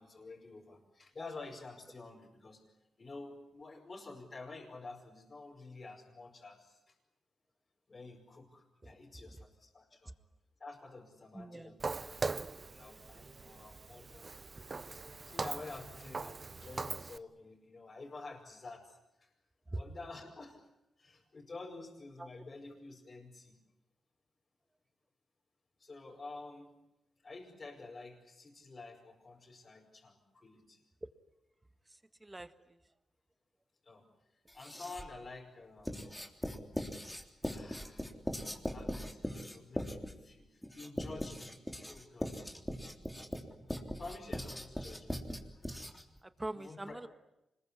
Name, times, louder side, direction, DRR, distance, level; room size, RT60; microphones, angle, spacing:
voice 1, 0.0-2.6 3.0-6.9 7.9-10.1 10.6-11.9 12.3-14.4 14.9-19.3 19.7-20.6 21.0-23.6 25.8-26.7 27.2-30.8 33.8-34.1 34.5-36.0 37.5-38.1 38.4-41.6 41.9-42.5 44.0-45.3 46.5-47.1, left 3 dB, 40° left, -4 dB, 5.3 m, -50 dB
voice 2, 11.3-11.7 19.7-19.8 22.2-22.3 32.2-32.8 46.2-47.1, right 2 dB, 20° right, 12 dB, 1.7 m, -43 dB
Walk footsteps, 11.8-17.2, right 4 dB, 40° right, 0.9 m, -41 dB
Writing, 34.5-35.2 35.8-46.2, equal, 10° left, 3.4 m, -40 dB
25.5 x 21.5 x 9.8 m, 0.89 s
cardioid pair, 70°, 0 cm